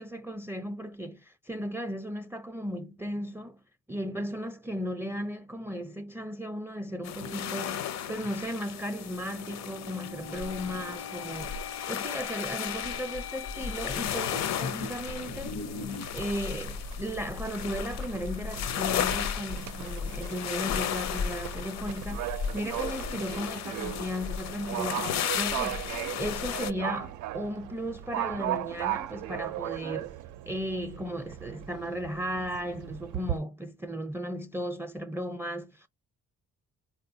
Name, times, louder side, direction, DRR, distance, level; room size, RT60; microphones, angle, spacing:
voice 1, 0.0-3.6 3.9-11.6 11.9-15.6 16.1-30.2 30.5-35.9, equal, 10° right, 0.4 m, -36 dB
sound 1, 7.0-16.2, left 5 dB, 85° left, 0.9 m, -42 dB
sound 2, 7.0-26.7, left 8 dB, 65° left, 0.6 m, -35 dB
Livestock farm animals working animals, 14.0-33.4, right 13 dB, 85° right, 0.5 m, -38 dB
3.9 x 2.2 x 2.7 m
cardioid pair, 90°, 30 cm